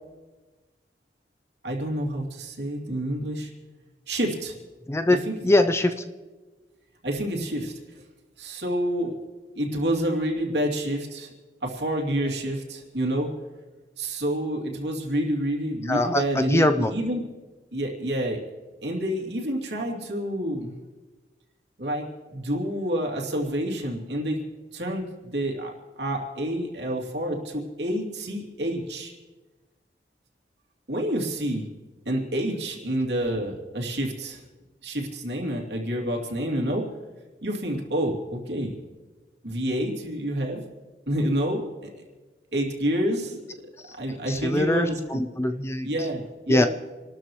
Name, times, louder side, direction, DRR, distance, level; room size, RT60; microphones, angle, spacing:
voice 1, 1.6-3.5 4.1-4.5 5.1-5.3 7.0-8.0 8.4-9.2 9.5-11.3 11.6-13.3 14.0-17.2 17.7-18.4 18.8-20.7 21.8-24.4 24.7-29.1 30.9-31.7 32.0-34.4 34.8-36.8 37.4-38.8 39.4-40.6 41.1-41.7 42.5-43.4 44.0-45.2 45.8-46.7, right 1 dB, 75° right, -1 dB, 2.9 m, -28 dB
voice 2, 4.9-5.2 5.4-6.0 15.9-16.9 43.8-43.9 44.3-45.9 46.5-46.7, left 1 dB, 15° left, 8 dB, 0.5 m, -22 dB
28.0 x 13.0 x 3.2 m, 1.3 s
head